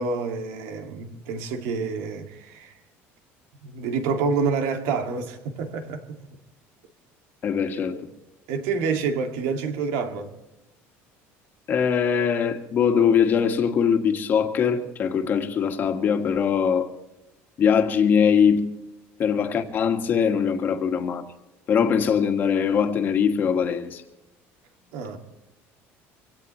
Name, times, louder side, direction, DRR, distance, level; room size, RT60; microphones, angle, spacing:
voice 1, 0.0-2.8 3.6-6.2 7.9-8.0 8.5-10.3 24.9-25.2, right 5 dB, 85° right, 2.3 m, -28 dB
voice 2, 7.4-8.1 11.7-16.9 17.6-18.7 19.2-21.3 21.7-24.0, left 7 dB, 35° left, 1.8 m, -22 dB
25.0 x 17.0 x 3.2 m
cardioid pair, 155°, 6 cm